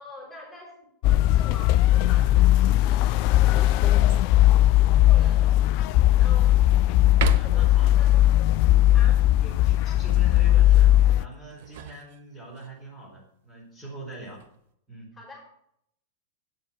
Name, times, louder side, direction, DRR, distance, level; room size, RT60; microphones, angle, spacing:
voice 1, 0.0-5.6 6.2-6.7 7.3-8.2 8.9-9.3 15.1-15.4, left 2 dB, 5° left, -4 dB, 5.1 m, -45 dB
sound 1, 1.0-11.3, left 14 dB, 45° left, 0.3 m, -19 dB
sound 2, 4.1-4.6 5.1-5.2 5.7-6.6 7.1-7.8 11.3-12.7 14.1-14.6, right 11 dB, 55° right, 0.7 m, -35 dB
voice 2, 4.4-4.7 6.0-6.4 7.3-7.9 8.9-14.4 14.9-15.1, right 1 dB, 15° right, -5 dB, 4.3 m, -43 dB
9.0 x 7.1 x 6.0 m, 0.71 s
figure-of-eight pair, 90°, 0 cm